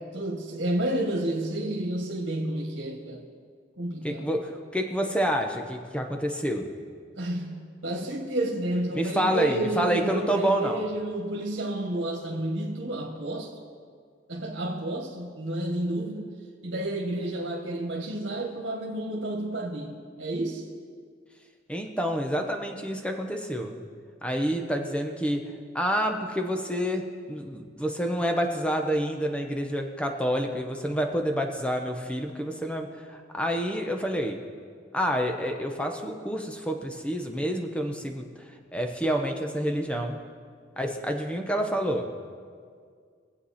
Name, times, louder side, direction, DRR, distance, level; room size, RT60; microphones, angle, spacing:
voice 1, 0.0-3.3 3.8-4.3 7.2-13.5 14.3-16.3 16.6-20.7, right 1 dB, 80° right, 0 dB, 1.6 m, -30 dB
voice 2, 4.0-6.7 8.9-10.8 21.7-23.8 24.2-34.4 34.9-40.2 40.8-42.1, equal, 5° left, 3 dB, 1.0 m, -28 dB
23.0 x 8.1 x 4.3 m, 2.1 s
head